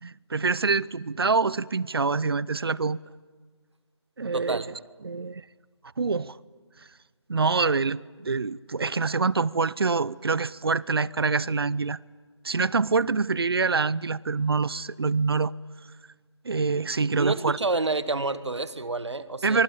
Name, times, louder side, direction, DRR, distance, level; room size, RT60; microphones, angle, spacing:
voice 1, 0.0-3.0 4.2-4.6 5.0-5.4 6.0-6.4 7.3-12.0 12.4-15.5 16.4-17.6 19.4-19.6, right 4 dB, 55° right, 0.7 m, -25 dB
voice 2, 4.3-4.7 17.2-19.6, right 3 dB, 75° right, 1.6 m, -29 dB
25.0 x 23.5 x 8.5 m
figure-of-eight pair, 165°, 15 cm